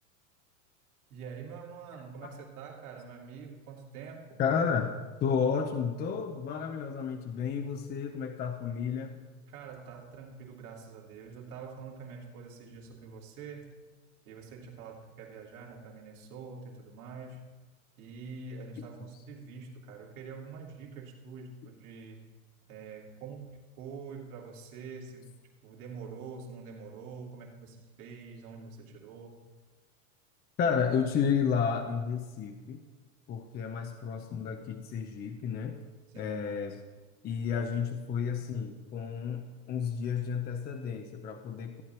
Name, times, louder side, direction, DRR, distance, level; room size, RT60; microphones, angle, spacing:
voice 1, 1.1-4.4 9.5-13.8 14.3-17.5 18.0-22.2 22.7-25.3 25.6-29.4 33.7-33.8 36.1-36.4, right 5 dB, 75° right, -1 dB, 2.6 m, -45 dB
voice 2, 4.4-9.2 30.6-32.8 33.3-35.8 36.2-36.7 37.2-41.8, left 6 dB, 20° left, 5 dB, 0.7 m, -31 dB
14.5 x 9.2 x 4.4 m, 1.4 s
supercardioid pair, 130°, 44 cm